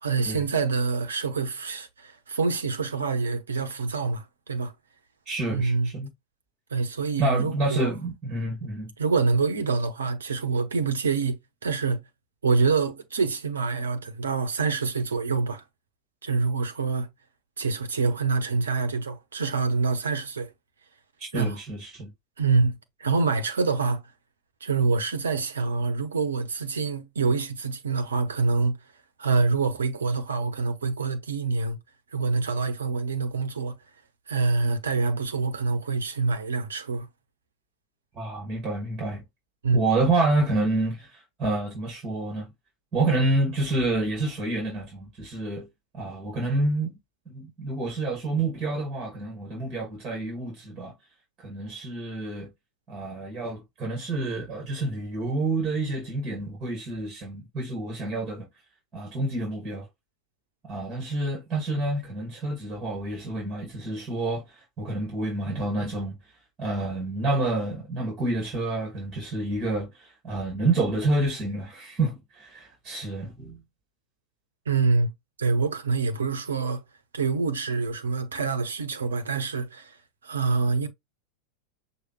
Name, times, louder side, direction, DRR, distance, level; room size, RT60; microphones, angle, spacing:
voice 1, 0.0-4.7 5.5-5.9 6.7-7.9 9.0-11.4 11.6-12.0 12.4-15.6 16.2-17.1 17.6-20.5 21.3-21.6 22.4-22.7 23.0-24.0 24.6-28.8 29.2-31.8 32.1-33.8 34.3-37.1 39.6-39.8 74.7-75.1 75.4-76.8 77.1-80.0 80.2-80.9, right 4 dB, 70° right, 0.9 m, -26 dB
voice 2, 5.3-6.1 7.2-8.9 21.2-22.1 38.2-39.2 39.7-42.5 42.9-45.7 45.9-47.0 47.3-50.9 51.4-52.5 52.9-58.5 58.9-59.9 60.7-66.2 66.6-73.6, right 2 dB, 25° right, 2.3 m, -28 dB
6.4 x 2.5 x 3.2 m
figure-of-eight pair, 90°, 0 cm